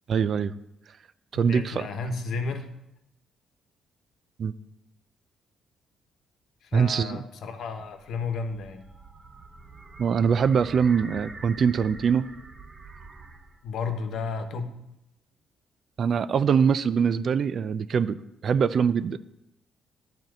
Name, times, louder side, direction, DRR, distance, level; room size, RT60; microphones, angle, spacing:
voice 1, 0.1-0.5 1.3-1.9 4.4-4.5 6.7-7.2 10.0-12.2 16.0-18.2 18.4-19.2, right 6 dB, 55° right, 15 dB, 0.4 m, -23 dB
voice 2, 1.3-2.7 6.6-8.8 13.6-14.7, left 4 dB, 70° left, 7 dB, 1.1 m, -32 dB
sound 1, 7.6-13.7, right 3 dB, 30° right, 0.8 m, -45 dB
10.5 x 4.5 x 7.9 m, 0.87 s
cardioid pair, 100°, 0 cm